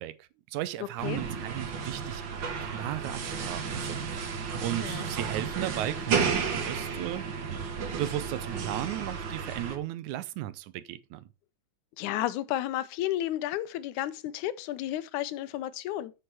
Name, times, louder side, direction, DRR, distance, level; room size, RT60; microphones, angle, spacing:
voice 1, 0.0-2.2 2.6-7.3 7.8-11.3, right 13 dB, 80° right, 2.1 m, -36 dB
sound 1, 1.0-9.8, right 6 dB, 50° right, 1.5 m, -33 dB
voice 2, 12.0-16.1, left 13 dB, 85° left, 2.1 m, -32 dB
7.8 x 6.6 x 4.7 m
omnidirectional pair, 3.4 m